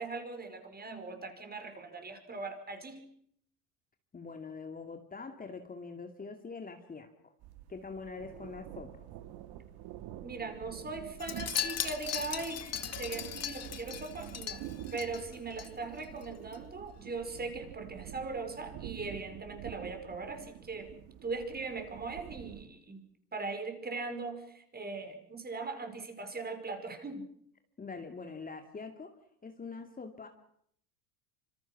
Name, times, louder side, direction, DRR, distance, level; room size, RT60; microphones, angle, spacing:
voice 1, 0.0-3.0 10.2-14.6 14.9-20.9 21.2-23.0 23.3-27.3, right 3 dB, 20° right, 6 dB, 5.4 m, -40 dB
voice 2, 4.1-7.3 7.7-9.0 27.8-29.1 29.4-30.3, left 4 dB, 20° left, 5 dB, 2.5 m, -44 dB
sound 1, 7.4-22.6, right 12 dB, 55° right, 2.2 m, -47 dB
Wind chime, 11.2-15.7 16.0-16.3 16.5-16.6, left 9 dB, 35° left, 2.1 m, -38 dB
26.5 x 25.5 x 6.1 m, 0.68 s
hypercardioid pair, 90°, 45 cm